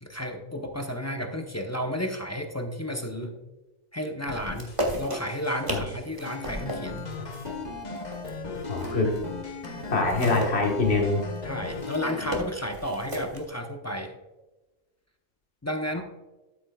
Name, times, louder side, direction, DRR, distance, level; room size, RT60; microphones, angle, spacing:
voice 1, 0.0-3.3 3.9-4.7 5.0-7.1 11.4-14.1 15.6-16.0, equal, 20° left, 3 dB, 0.4 m, -32 dB
sound 1, 4.3-5.0 5.3-12.4, left 4 dB, 35° left, 1.0 m, -37 dB
sound 2, 4.4-9.3 9.6-13.4, equal, 25° right, 1.3 m, -35 dB
voice 2, 8.7-9.1 9.9-11.2, left 3 dB, 55° left, 0 dB, 1.7 m, -24 dB
12.5 x 7.7 x 2.3 m, 1.1 s
omnidirectional pair, 1.3 m